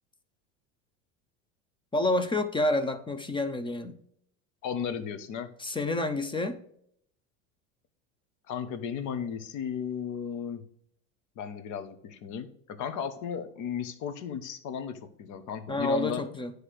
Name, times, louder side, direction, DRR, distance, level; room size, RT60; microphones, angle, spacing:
voice 1, 1.9-4.0 5.6-6.6 15.7-16.5, left 2 dB, 15° left, 10 dB, 0.7 m, -28 dB
voice 2, 4.6-5.5 8.5-10.6 11.4-16.2, left 7 dB, 50° left, 10 dB, 1.0 m, -35 dB
9.7 x 3.3 x 6.3 m, 0.69 s
hypercardioid pair, 95°, 39 cm